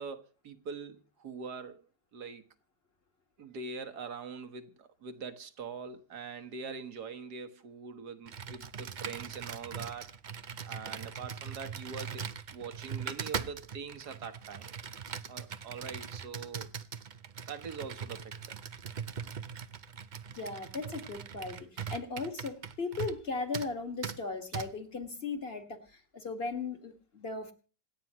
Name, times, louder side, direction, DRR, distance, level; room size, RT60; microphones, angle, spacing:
voice 1, 0.0-1.8 2.1-2.4 3.4-10.1 10.7-12.2 12.5-14.7 15.3-16.7 17.5-18.6, right 5 dB, 65° right, 1.9 m, -43 dB
Computer keyboard, 8.3-23.3 23.5-23.7 24.0-24.2 24.5-24.7, right 7 dB, 85° right, 0.4 m, -41 dB
voice 2, 20.4-27.5, left 4 dB, 35° left, 2.1 m, -37 dB
26.5 x 9.3 x 3.1 m
omnidirectional pair, 1.9 m